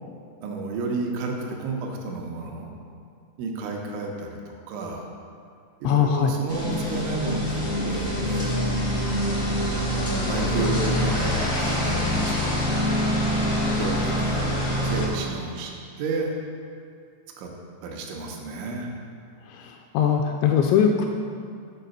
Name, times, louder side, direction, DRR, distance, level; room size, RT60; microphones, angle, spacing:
voice 1, 0.4-2.7 3.4-5.1 5.8-8.6 10.3-13.0 13.8-14.5 14.8-15.7 16.0-16.3 17.4-17.5 17.8-18.9, right 3 dB, 85° right, 1 dB, 3.3 m, -31 dB
voice 2, 5.8-6.3 19.5-21.1, left 8 dB, 85° left, 3 dB, 2.7 m, -21 dB
sound 1, 6.5-15.1, equal, 55° left, 0.9 m, -25 dB
9.0 x 4.9 x 6.6 m, 2.3 s
omnidirectional pair, 5.3 m